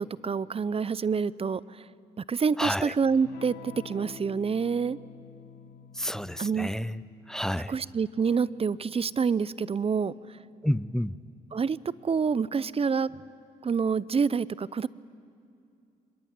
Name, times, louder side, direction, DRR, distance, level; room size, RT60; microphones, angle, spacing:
voice 1, 0.0-1.9 2.2-5.0 6.4-6.7 7.7-10.1 11.5-11.8 12.0-13.1 13.6-14.9, right 5 dB, 35° right, 20 dB, 0.7 m, -27 dB
voice 2, 2.6-2.9 5.9-7.8 10.6-11.2, equal, 5° left, 18 dB, 0.6 m, -30 dB
Electric guitar / Strum, 3.2-11.5, left 8 dB, 75° left, 1.3 m, -50 dB
25.0 x 21.5 x 8.9 m, 2.5 s
supercardioid pair, 55°, 16 cm